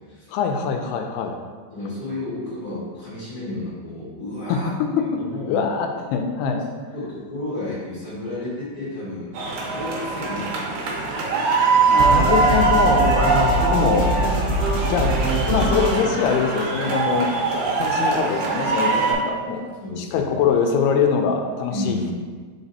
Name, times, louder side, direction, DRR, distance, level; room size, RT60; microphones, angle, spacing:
voice 1, 0.3-1.4 4.5-5.0 5.5-6.6 11.9-14.1 14.8-15.1 15.5-17.3 17.8-19.6 20.0-22.1, left 6 dB, 80° left, 4 dB, 2.5 m, -23 dB
voice 2, 1.7-4.7 5.0-5.6 6.9-9.3 9.6-11.3 19.8-20.3 21.7-22.1, left 2 dB, 45° left, -10 dB, 1.2 m, -32 dB
sound 1, 9.3-19.1, right 4 dB, 80° right, 1.7 m, -22 dB
sound 2, 12.0-17.9, right 1 dB, 55° right, 1.1 m, -24 dB
5.1 x 4.5 x 4.0 m, 1.5 s
omnidirectional pair, 4.7 m